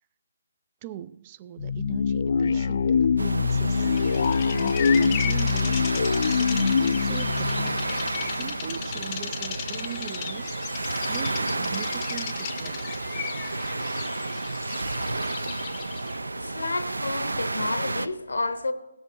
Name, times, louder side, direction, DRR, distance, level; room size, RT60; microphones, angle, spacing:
voice 1, 0.8-3.9 4.4-13.0, right 11 dB, 30° right, 0.3 m, -40 dB
sound 1, 1.6-8.8, left 5 dB, 55° left, 0.3 m, -24 dB
sound 2, 3.2-18.1, right 2 dB, 85° right, 0.6 m, -31 dB
Bird vocalization bird call bird song, 3.5-16.2, left 9 dB, 30° left, 0.6 m, -37 dB
voice 2, 16.2-18.7, left 3 dB, 80° left, 1.0 m, -30 dB
17.0 x 6.3 x 5.2 m
figure-of-eight pair, 145°, 0 cm